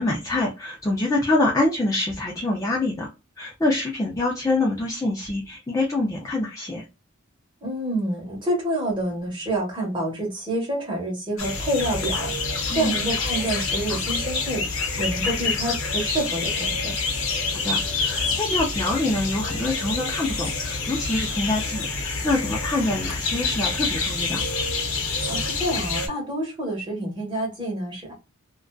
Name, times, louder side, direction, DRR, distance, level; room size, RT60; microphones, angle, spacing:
voice 1, 0.0-3.1 3.4-6.8 12.7-13.0 13.9-14.0 17.6-24.4, left 2 dB, 15° left, -3 dB, 0.4 m, -25 dB
voice 2, 7.6-14.6 15.0-16.9 25.3-28.1, right 1 dB, 20° right, -1 dB, 1.1 m, -28 dB
sound 1, 11.4-26.1, left 4 dB, 65° left, 0.7 m, -27 dB
2.5 x 2.2 x 2.3 m, 0.28 s
head